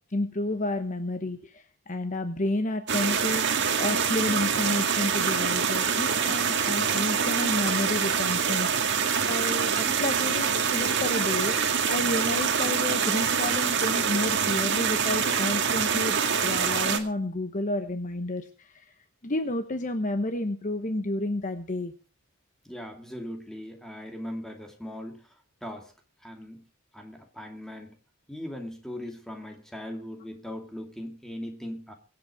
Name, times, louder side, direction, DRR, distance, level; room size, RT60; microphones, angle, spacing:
voice 1, 0.1-8.9 9.2-18.9 19.2-21.9, left 2 dB, 35° left, 8 dB, 1.0 m, -31 dB
sound 1, 2.9-17.0, right 6 dB, 55° right, 2.0 m, -25 dB
voice 2, 22.6-25.3 25.6-25.9 26.2-26.6 26.9-27.9 28.3-31.9, left 1 dB, ahead, 3 dB, 2.6 m, -39 dB
23.5 x 8.1 x 4.8 m, 0.35 s
head